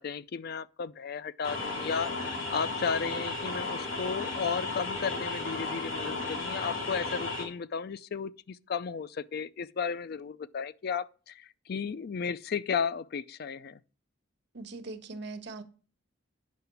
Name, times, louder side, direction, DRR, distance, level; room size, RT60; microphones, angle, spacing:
voice 1, 0.0-13.8, left 6 dB, 50° left, 0.4 m, -34 dB
sound 1, 1.4-7.4, left 3 dB, 80° left, 3.2 m, -34 dB
voice 2, 14.5-15.6, right 3 dB, 60° right, 1.3 m, -40 dB
9.4 x 5.8 x 6.8 m
head